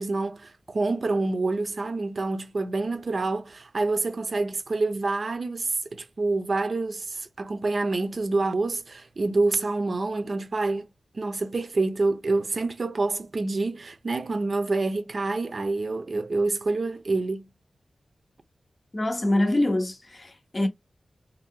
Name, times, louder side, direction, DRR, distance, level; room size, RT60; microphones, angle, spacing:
voice 1, 0.0-10.9 11.1-17.5, right 3 dB, 55° right, 0.5 m, -27 dB
voice 2, 18.9-20.7, left 1 dB, 35° left, 0.6 m, -25 dB
2.6 x 2.2 x 3.6 m
wide cardioid pair, 75°, 0 cm